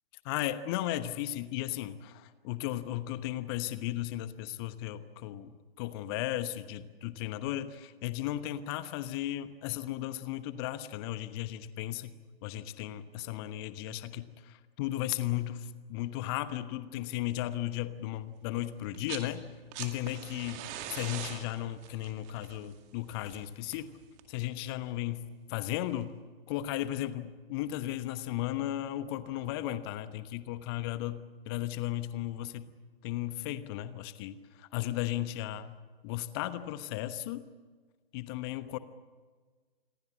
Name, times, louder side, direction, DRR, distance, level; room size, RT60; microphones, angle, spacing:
voice 1, 0.2-19.5 19.8-24.0 24.3-26.2 26.5-32.7 33.0-35.8 36.0-37.5 38.1-38.8, left 14 dB, 25° left, 13 dB, 1.1 m, -35 dB
sound 1, 18.8-19.3 19.6-24.4 25.7-25.8, right 10 dB, 25° right, 2.2 m, -43 dB
28.0 x 22.0 x 7.6 m, 1.4 s
figure-of-eight pair, 125°, 30 cm